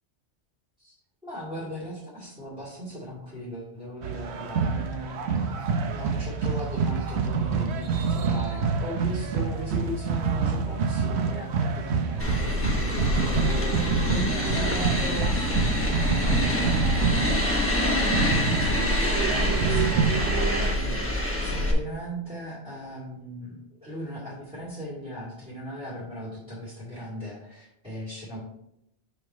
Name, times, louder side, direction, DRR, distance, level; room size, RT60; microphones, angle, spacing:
voice 1, 1.2-5.3 5.9-17.5 17.9-28.4, equal, 5° right, -9 dB, 2.2 m, -38 dB
sound 1, 4.0-20.7, right 5 dB, 65° right, 0.9 m, -27 dB
sound 2, 12.2-21.7, left 1 dB, 10° left, 1.0 m, -26 dB
5.7 x 5.4 x 4.2 m, 0.79 s
omnidirectional pair, 1.2 m